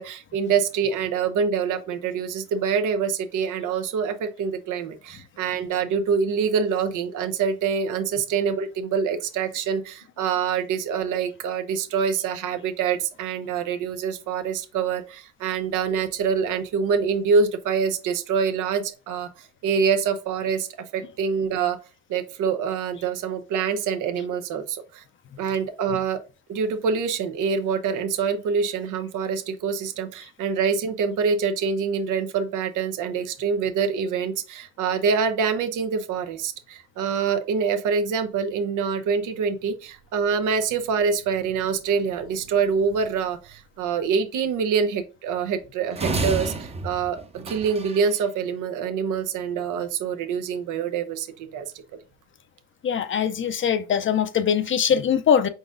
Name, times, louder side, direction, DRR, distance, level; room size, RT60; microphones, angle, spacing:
voice 1, 0.0-20.7 20.9-21.8 22.1-25.0 25.4-26.2 26.5-51.7, right 6 dB, 85° right, 0.7 m, -25 dB
sound 1, 46.0-48.2, right 3 dB, 20° right, 0.6 m, -30 dB
voice 2, 52.8-55.5, left 8 dB, 40° left, 0.5 m, -22 dB
5.0 x 3.9 x 2.5 m
cardioid pair, 90°, 30 cm